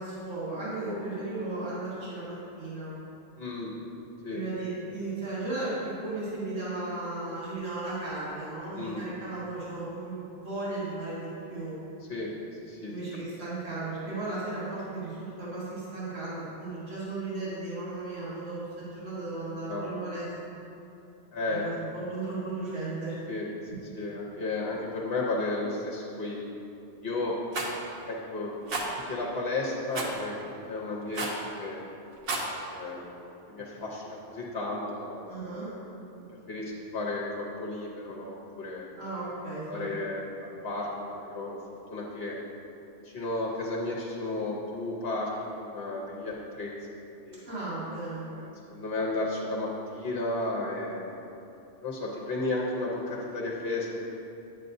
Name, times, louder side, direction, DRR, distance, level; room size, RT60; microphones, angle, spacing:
voice 1, 0.0-2.9 4.3-11.7 12.9-20.3 21.5-23.2 35.2-35.7 39.0-39.9 47.5-48.3, right 2 dB, 85° right, -10 dB, 2.2 m, -35 dB
voice 2, 3.4-3.7 4.2-4.4 4.9-5.0 8.7-9.1 12.1-12.3 12.6-12.9 19.5-19.9 21.3-21.6 23.3-23.5 23.9-26.4 27.0-27.4 28.1-28.5 29.0-31.8 32.6-33.1 33.5-35.3 35.6-36.1 36.5-38.9 39.7-41.6 41.9-42.4 43.0-46.7 47.1-47.5 48.3-51.2 51.8-54.2, left 2 dB, 60° left, -3 dB, 1.1 m, -33 dB
Rattle, 27.5-27.7 28.7-28.9 29.9-30.2 31.1-31.4 32.1-32.5, right 2 dB, 55° right, 1.0 m, -31 dB
8.9 x 7.4 x 2.6 m, 2.8 s
omnidirectional pair, 1.2 m